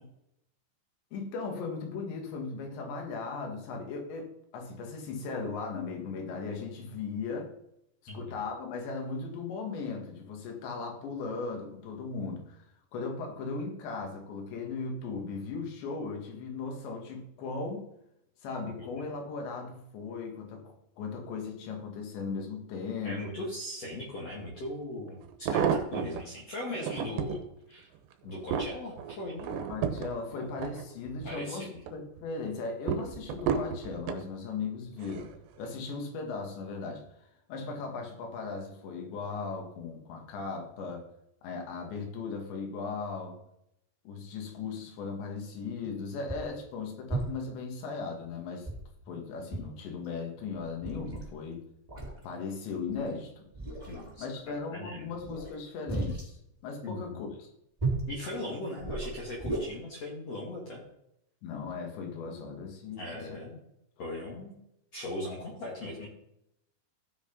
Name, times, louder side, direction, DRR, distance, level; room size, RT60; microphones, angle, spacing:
voice 1, 1.1-7.5 8.1-12.6 12.9-17.9 18.4-23.2 29.5-35.3 35.6-37.0 37.5-41.0 41.4-43.4 44.1-48.7 49.1-51.6 52.2-53.5 54.2-57.5 61.4-63.4, left 4 dB, 90° left, 2 dB, 4.2 m, -37 dB
voice 2, 23.0-25.2 25.5-27.4 27.7-27.9 28.2-29.5 31.2-31.7 53.9-55.1 56.8-57.2 58.1-60.8 63.0-63.6 64.0-64.5 64.9-66.1, left 1 dB, 45° left, -4 dB, 2.8 m, -39 dB
sound 1, 24.5-24.6 25.2-26.2 26.7-27.4 28.0-31.4 31.8-32.2 32.9-34.3 35.0-35.4 35.7-35.8, right 7 dB, 85° right, 3.2 m, -32 dB
sound 2, 45.8-45.9 46.3-46.6 47.1-47.5 48.7-49.2 49.5-49.7 50.0-50.1 50.5-51.3 51.9-52.2 52.9-53.1 53.5-54.1 55.2-56.3 57.8-58.1 58.8-59.6, right 2 dB, 10° right, 3.3 m, -34 dB
16.0 x 6.0 x 5.3 m, 0.79 s
omnidirectional pair, 4.9 m